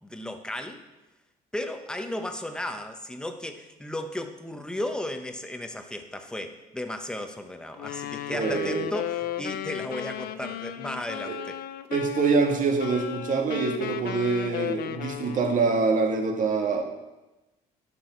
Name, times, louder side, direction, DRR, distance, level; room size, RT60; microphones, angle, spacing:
voice 1, 0.0-0.8 1.5-11.6, left 1 dB, 5° left, 6 dB, 0.9 m, -35 dB
Wind instrument woodwind instrument, 7.7-15.7, left 11 dB, 65° left, 0.5 m, -35 dB
voice 2, 8.3-8.9 11.2-11.4 11.9-16.8, right 4 dB, 50° right, 3 dB, 1.6 m, -25 dB
10.5 x 6.2 x 4.5 m, 1.0 s
cardioid pair, 110°, 17 cm